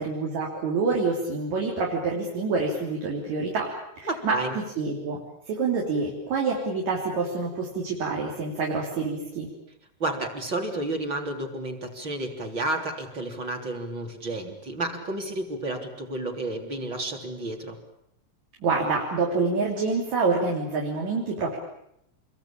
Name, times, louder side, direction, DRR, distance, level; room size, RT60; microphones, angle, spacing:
voice 1, 0.0-3.7 4.0-5.2 5.5-9.5 18.6-21.6, right 4 dB, 55° right, -1 dB, 4.8 m, -27 dB
voice 2, 4.1-4.5 10.0-17.8, right 2 dB, 35° right, 2 dB, 3.9 m, -31 dB
26.5 x 22.0 x 8.8 m, 0.76 s
omnidirectional pair, 3.9 m